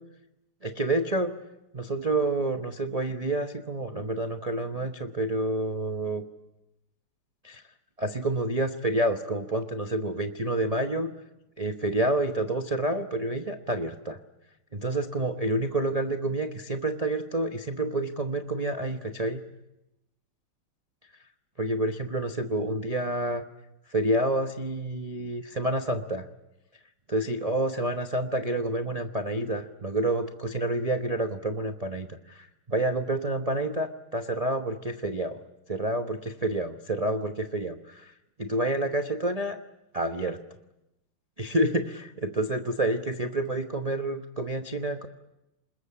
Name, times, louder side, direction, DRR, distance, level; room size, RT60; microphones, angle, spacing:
voice 1, 0.6-1.3 1.7-6.2 7.4-7.6 8.0-11.1 11.6-14.2 14.7-19.4 21.6-23.4 23.9-26.2 27.1-35.4 35.7-38.1 38.4-39.6 39.9-40.4 41.4-45.1, right 1 dB, 40° right, 5 dB, 0.5 m, -28 dB
26.0 x 21.0 x 8.5 m, 0.92 s
omnidirectional pair, 2.4 m